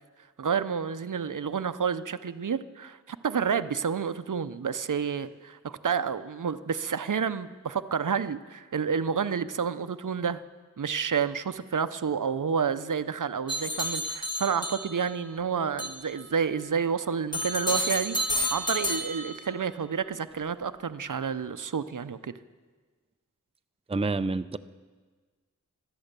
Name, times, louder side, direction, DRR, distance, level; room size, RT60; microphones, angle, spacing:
voice 1, 0.4-10.4 10.8-18.2 18.5-22.3, right 6 dB, 80° right, 13 dB, 0.6 m, -29 dB
sound 1, 13.5-15.2 15.8-16.1 17.3-19.6, left 1 dB, 15° left, 2.0 m, -30 dB
voice 2, 23.9-24.6, right 3 dB, 20° right, 12 dB, 0.5 m, -28 dB
17.0 x 12.5 x 6.7 m, 1.4 s
wide cardioid pair, 50°, 31 cm